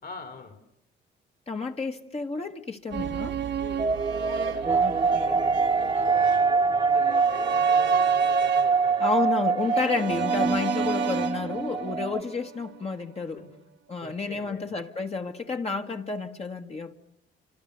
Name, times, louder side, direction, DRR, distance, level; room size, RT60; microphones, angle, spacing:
voice 1, 0.0-0.6 3.6-9.3 13.3-13.5 14.0-14.8, left 5 dB, 45° left, 3.4 m, -44 dB
voice 2, 1.5-3.4 4.8-5.4 9.0-13.4 13.9-16.9, left 4 dB, 30° left, 1.6 m, -31 dB
sound 1, 2.9-13.0 13.3-13.4, right 9 dB, 70° right, 1.4 m, -34 dB
sound 2, 3.8-12.2, right 4 dB, 20° right, 1.2 m, -24 dB
29.0 x 26.5 x 6.7 m
cardioid pair, 90°, 20 cm